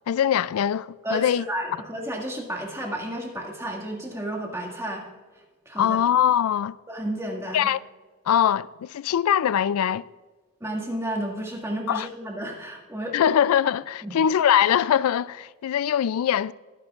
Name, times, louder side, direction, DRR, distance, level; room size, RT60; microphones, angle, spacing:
voice 1, 0.1-1.4 5.8-6.7 7.5-7.8 8.3-10.0 11.9-12.1 13.1-16.5, left 9 dB, 75° left, 0.3 m, -22 dB
voice 2, 1.0-5.0 5.7-6.0 6.9-7.7 10.6-13.2 14.0-14.1, right 1 dB, 10° right, 1.9 m, -32 dB
22.5 x 9.7 x 2.4 m
head